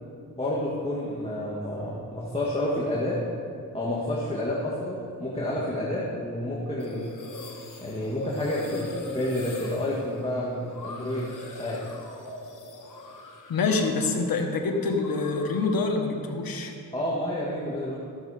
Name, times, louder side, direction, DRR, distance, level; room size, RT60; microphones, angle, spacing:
voice 1, 0.4-3.2 3.7-7.1 7.8-11.3 11.6-11.8 16.9-18.0, left 1 dB, 15° left, -6 dB, 1.6 m, -29 dB
sound 1, 6.8-14.2 14.5-16.0, left 1 dB, 65° left, 1.3 m, -41 dB
voice 2, 13.5-16.7, left 3 dB, 80° left, 3 dB, 1.2 m, -26 dB
14.0 x 6.6 x 4.8 m, 2.5 s
cardioid pair, 80°, 35 cm